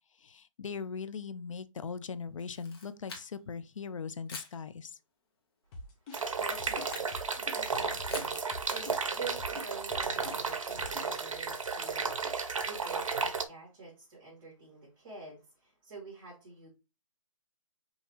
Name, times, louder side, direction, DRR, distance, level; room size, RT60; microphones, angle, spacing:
voice 1, 0.2-5.0, left 5 dB, 70° left, 0.6 m, -40 dB
Camera, 2.4-3.6 4.3-4.6 6.3-7.1 8.1-8.4, left 4 dB, 45° left, 1.3 m, -46 dB
sound 1, 5.7-11.1, left 2 dB, 15° left, 0.7 m, -45 dB
voice 2, 6.1-16.7, right 3 dB, 40° right, 2.8 m, -47 dB
sound 2, 6.1-13.4, right 5 dB, 75° right, 0.8 m, -33 dB
5.5 x 2.8 x 2.9 m
hypercardioid pair, 165°, 17 cm